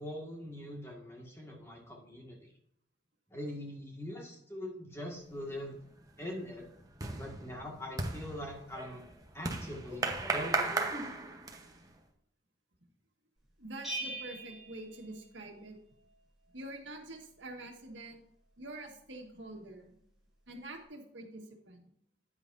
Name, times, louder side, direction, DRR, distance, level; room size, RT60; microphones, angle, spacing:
voice 1, 0.0-2.5 3.3-5.8 6.2-6.7 7.1-9.0 9.3-10.9, left 1 dB, 15° left, -1 dB, 2.0 m, -43 dB
sound 1, 5.4-5.7 6.1-11.9, right 3 dB, 20° right, 1.0 m, -36 dB
voice 2, 13.6-15.8 16.5-18.2 18.6-19.9 20.5-21.8, right 2 dB, 80° right, 2 dB, 1.8 m, -46 dB
Bell, 13.8-15.7, right 2 dB, ahead, 4.0 m, -42 dB
9.7 x 9.0 x 2.7 m, 0.71 s
head